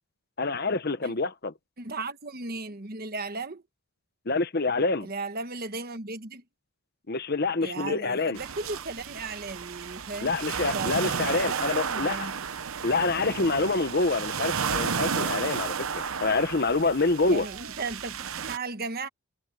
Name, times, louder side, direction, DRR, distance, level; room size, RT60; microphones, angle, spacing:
voice 1, 0.4-1.5 4.3-5.1 7.1-8.4 10.2-12.2 12.8-17.5, left 3 dB, 45° left, 1.0 m, -26 dB
voice 2, 1.8-3.6 5.0-6.4 7.6-10.3 10.7-12.4 17.3-19.1, right 3 dB, 40° right, 1.2 m, -36 dB
sound 1, 8.4-18.6, right 6 dB, 70° right, 0.9 m, -32 dB
head